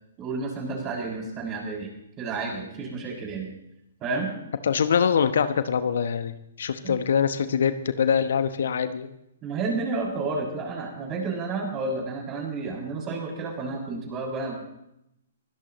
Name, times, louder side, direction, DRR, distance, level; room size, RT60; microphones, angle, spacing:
voice 1, 0.2-1.9 2.2-3.5 4.0-4.3 6.8-7.0 9.4-14.5, right 3 dB, 30° right, -1 dB, 6.8 m, -31 dB
voice 2, 4.6-9.1, left 7 dB, 65° left, 10 dB, 1.1 m, -24 dB
23.5 x 18.0 x 3.1 m, 0.82 s
figure-of-eight pair, 125°, 0 cm